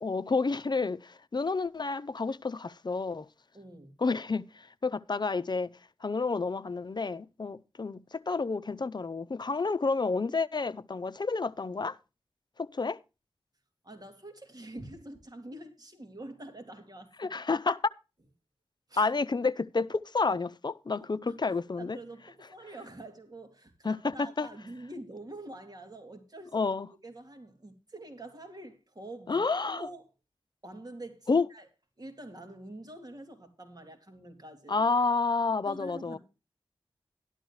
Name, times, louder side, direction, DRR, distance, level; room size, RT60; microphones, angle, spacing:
voice 1, 0.0-3.3 4.0-5.7 6.0-12.0 12.6-13.0 17.2-17.8 19.0-22.0 23.8-24.5 26.5-26.9 29.3-29.9 31.3-31.5 34.7-36.2, left 4 dB, 45° left, 0.7 m, -30 dB
voice 2, 3.5-3.9 13.8-17.3 18.9-19.0 21.2-26.7 27.0-30.1 30.6-31.7 32.0-34.9 35.6-36.2, right 1 dB, 40° right, 3.0 m, -46 dB
12.5 x 12.0 x 3.2 m
wide cardioid pair, 55°, 10 cm